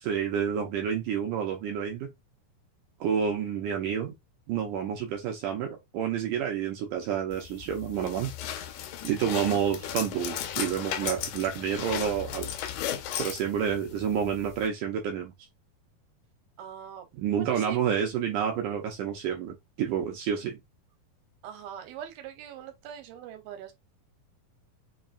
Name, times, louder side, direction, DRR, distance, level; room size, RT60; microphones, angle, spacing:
voice 1, 0.0-2.1 3.0-4.1 4.5-8.3 9.0-12.5 13.2-15.3 17.2-20.6, right 8 dB, 75° right, 2.1 m, -29 dB
sound 1, 7.3-14.7, left 10 dB, 80° left, 1.8 m, -36 dB
voice 2, 16.6-17.1 17.3-17.8 21.4-23.7, right 9 dB, 90° right, 2.6 m, -42 dB
5.6 x 2.3 x 2.4 m
omnidirectional pair, 4.1 m